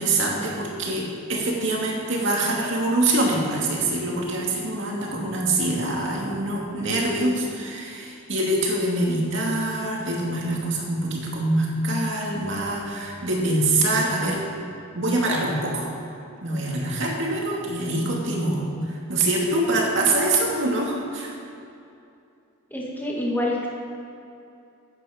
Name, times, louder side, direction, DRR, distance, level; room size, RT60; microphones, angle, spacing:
voice 1, 0.0-14.4 14.9-15.9 16.4-21.4, right 2 dB, 55° right, -2 dB, 2.4 m, -24 dB
voice 2, 22.7-23.7, left 1 dB, 10° left, -3 dB, 1.9 m, -26 dB
14.0 x 9.1 x 5.2 m, 2.6 s
head